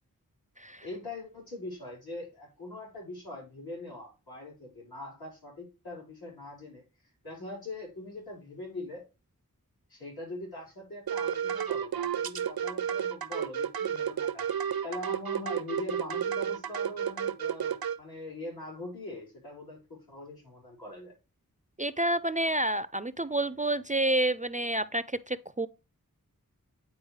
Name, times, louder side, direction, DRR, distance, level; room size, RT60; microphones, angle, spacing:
voice 1, 0.8-6.8 7.2-9.0 9.9-21.2, left 2 dB, 85° left, 4.1 m, -42 dB
sound 1, 11.1-18.0, right 8 dB, 80° right, 0.5 m, -31 dB
voice 2, 21.8-25.7, right 1 dB, 20° right, 0.3 m, -29 dB
9.4 x 4.1 x 3.1 m
wide cardioid pair, 40°, 36 cm